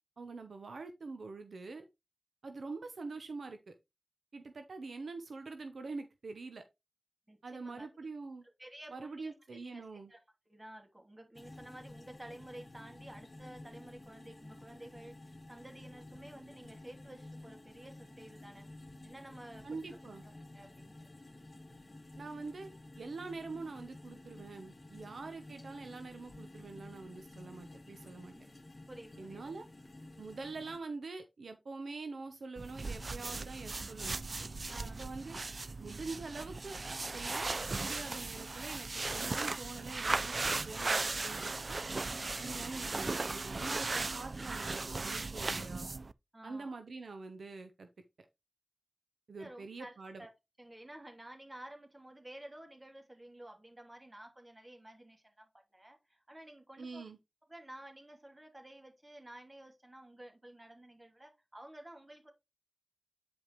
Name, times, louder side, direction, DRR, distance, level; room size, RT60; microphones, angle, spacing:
voice 1, 0.2-1.9 2.4-3.7 4.3-6.6 7.4-8.4 8.9-10.1 19.6-20.2 22.2-22.7 23.0-28.3 29.2-29.7 30.2-34.2 34.8-35.4 35.8-36.8 37.1-37.5 37.8-41.8 42.4-45.9 46.4-47.9 49.3-50.3 56.8-57.2, right 3 dB, 90° right, 0.8 m, -45 dB
voice 2, 7.3-7.9 8.6-10.2 10.5-18.7 19.0-20.0 20.2-21.1 28.3-28.5 28.9-29.5 34.7-35.0 46.3-46.7 49.4-50.3 50.6-57.1 57.5-62.3, right 1 dB, 25° right, 2.9 m, -52 dB
sound 1, 11.3-30.8, left 2 dB, 45° left, 1.8 m, -52 dB
sound 2, 32.6-46.1, right 3 dB, 60° right, 0.3 m, -37 dB
9.2 x 5.2 x 3.1 m
cardioid pair, 45°, 0 cm